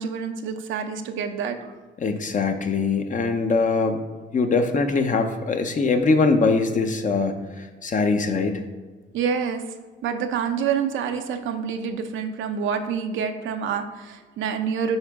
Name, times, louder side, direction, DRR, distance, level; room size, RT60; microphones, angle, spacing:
voice 1, 0.0-1.8 9.1-9.6 10.0-15.0, right 6 dB, 80° right, 6 dB, 0.7 m, -27 dB
voice 2, 2.0-4.0 4.3-8.6, left 4 dB, 40° left, 6 dB, 0.8 m, -22 dB
9.7 x 3.9 x 3.6 m, 1.3 s
cardioid pair, 90°, 20 cm